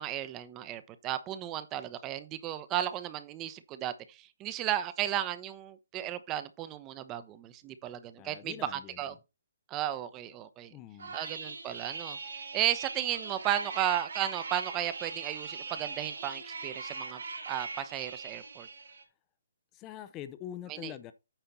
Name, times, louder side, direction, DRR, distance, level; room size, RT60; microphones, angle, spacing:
voice 1, 0.0-9.1 9.7-10.7 11.1-12.2 12.5-17.2 17.5-18.7 20.7-20.9, right 12 dB, 20° right, 0.9 m, -34 dB
voice 2, 8.2-9.2 10.7-11.2 19.7-21.1, left 11 dB, 25° left, 0.7 m, -44 dB
sound 1, 11.0-19.0, right 4 dB, 70° right, 3.2 m, -41 dB
9.0 x 5.6 x 4.2 m
figure-of-eight pair, 140°, 0 cm